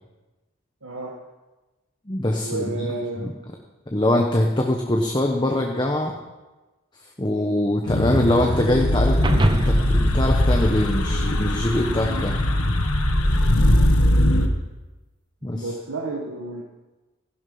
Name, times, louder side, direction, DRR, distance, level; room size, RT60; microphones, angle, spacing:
voice 1, 0.8-1.2 2.4-3.3 13.6-13.9 15.5-16.6, right 2 dB, 80° right, -1 dB, 1.6 m, -31 dB
voice 2, 2.1-2.9 3.2-3.3 3.9-6.2 7.2-12.4 15.4-15.7, left 1 dB, 20° left, 1 dB, 1.0 m, -23 dB
sound 1, 7.9-14.5, left 1 dB, 80° left, 1.4 m, -20 dB
sound 2, 9.2-11.7, right 1 dB, 20° right, 0.7 m, -26 dB
16.0 x 11.5 x 5.5 m, 1.1 s
head